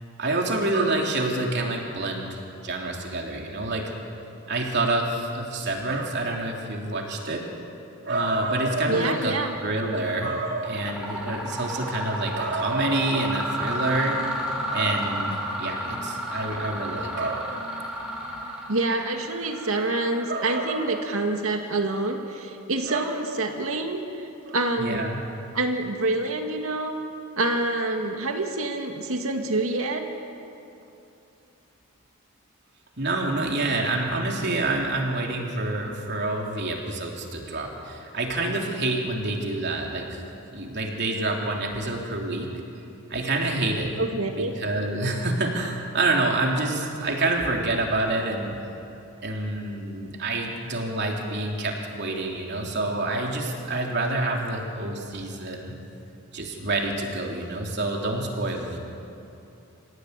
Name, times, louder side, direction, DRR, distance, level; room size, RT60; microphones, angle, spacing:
voice 1, 0.2-2.4 2.6-3.9 4.5-7.4 8.0-9.4 9.6-14.2 14.7-15.3 15.6-17.5 20.3-21.1 22.9-23.1 24.5-25.2 33.0-40.2 40.5-42.5 43.1-43.9 44.4-48.6 49.2-55.7 56.3-58.8, right 2 dB, 50° right, 0 dB, 3.5 m, -27 dB
voice 2, 8.9-9.6 18.7-24.0 24.5-25.0 25.5-26.9 27.4-30.0 44.0-44.5, right 2 dB, 75° right, 4 dB, 2.1 m, -26 dB
Mechanisms, 9.9-10.3 10.6-21.2, equal, 5° right, 5.4 m, -32 dB
26.5 x 16.5 x 9.9 m, 2.8 s
head